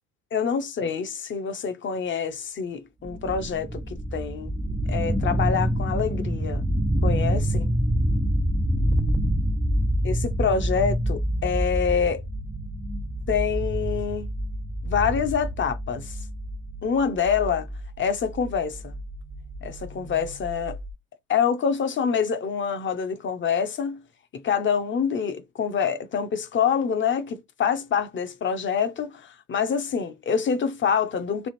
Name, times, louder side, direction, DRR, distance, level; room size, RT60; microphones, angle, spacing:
voice 1, 0.3-4.6 4.9-6.6 7.0-7.7 10.0-12.2 13.3-14.3 14.8-16.2 16.8-17.7 18.0-18.9 19.6-20.8 21.3-24.0 24.3-31.5, left 6 dB, 25° left, 0.7 m, -26 dB
sound 1, 3.1-20.9, equal, 5° right, 0.4 m, -27 dB
3.4 x 2.3 x 4.2 m
supercardioid pair, 95°, 45 cm